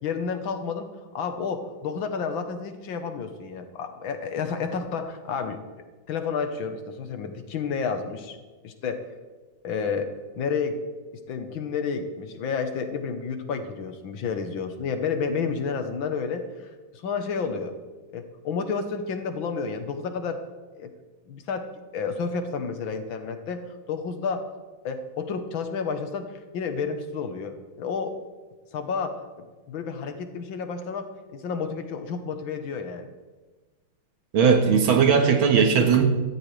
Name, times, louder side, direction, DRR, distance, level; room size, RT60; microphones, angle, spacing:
voice 1, 0.0-5.6 6.1-8.4 8.6-9.0 9.6-10.8 11.3-17.7 18.1-20.4 20.8-20.9 21.3-24.5 24.8-28.2 28.7-33.1, left 5 dB, 80° left, 7 dB, 1.9 m, -31 dB
voice 2, 34.3-36.0, right 6 dB, 90° right, 4 dB, 2.3 m, -18 dB
17.0 x 14.0 x 3.4 m, 1.3 s
omnidirectional pair, 2.2 m